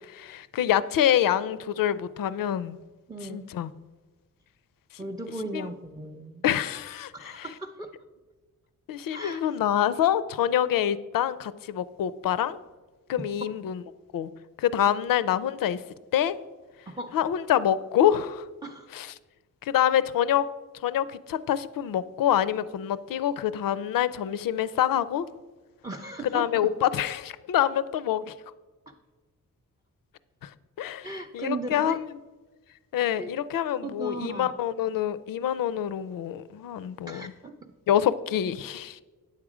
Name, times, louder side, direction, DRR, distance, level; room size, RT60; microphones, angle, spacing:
voice 1, 0.1-2.8 3.3-3.7 5.5-5.7 6.4-7.5 8.9-12.6 13.1-13.8 14.1-14.3 14.6-15.8 16.1-16.4 17.1-18.5 18.9-19.1 19.6-20.5 20.8-25.3 26.3-28.3 30.4-30.5 30.8-31.1 31.3-32.1 32.9-37.2 37.9-39.0, left 10 dB, 80° left, 0.5 m, -26 dB
voice 2, 3.1-3.5 5.0-6.4 7.1-7.9 9.1-9.4 13.2-13.5 16.9-17.2 18.6-18.9 25.8-26.7 28.9-29.0 31.0-32.0 33.2-33.3 33.8-34.5 37.1-37.6, right 2 dB, 10° right, 0.4 m, -37 dB
9.6 x 7.3 x 4.9 m
wide cardioid pair, 150°, 33 cm